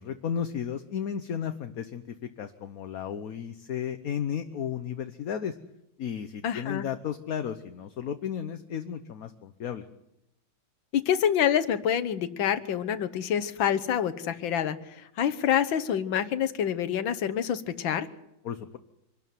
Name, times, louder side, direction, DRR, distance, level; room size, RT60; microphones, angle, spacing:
voice 1, 0.0-5.5 6.0-9.8 18.4-18.8, left 8 dB, 55° left, 9 dB, 1.2 m, -34 dB
voice 2, 6.4-6.9 10.9-14.8 15.2-18.1, left 9 dB, 90° left, 10 dB, 1.9 m, -27 dB
25.5 x 12.5 x 9.3 m, 0.87 s
omnidirectional pair, 2.0 m